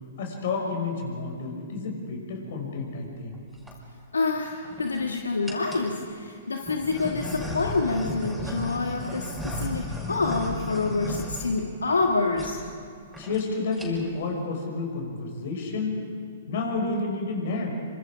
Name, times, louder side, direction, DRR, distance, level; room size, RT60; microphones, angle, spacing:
voice 1, 0.2-3.4 13.2-16.0 16.5-17.8, left 3 dB, 60° left, 2 dB, 5.9 m, -30 dB
sound 1, 3.3-3.7 4.4-5.0 5.4-5.9 6.6-12.1 12.3-12.5 12.8-12.9 13.1-13.4 13.7-14.2, left 1 dB, ahead, 5.8 m, -35 dB
voice 2, 4.1-12.6, left 3 dB, 85° left, 2 dB, 1.6 m, -27 dB
26.5 x 25.5 x 5.1 m, 2.2 s
hypercardioid pair, 120°, 0 cm